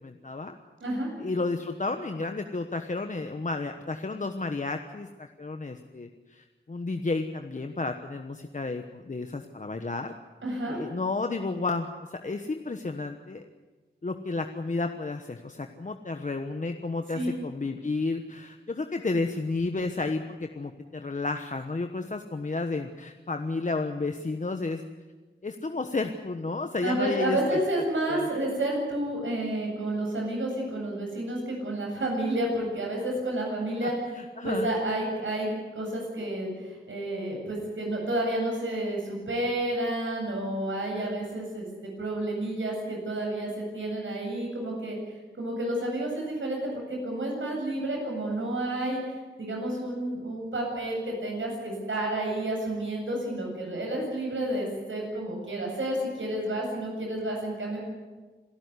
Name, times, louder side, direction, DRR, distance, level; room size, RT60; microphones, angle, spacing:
voice 1, 0.0-0.6 1.2-10.1 10.7-13.4 14.0-24.8 25.4-27.6 28.1-28.3 33.8-33.9 34.2-34.7, left 3 dB, 40° left, 6 dB, 1.2 m, -32 dB
voice 2, 10.4-10.8 17.1-17.3 26.8-33.9 34.4-45.0 45.4-49.0 49.4-57.8, right 1 dB, 85° right, 0 dB, 8.0 m, -30 dB
26.5 x 13.0 x 9.7 m, 1.3 s
wide cardioid pair, 80°, 20 cm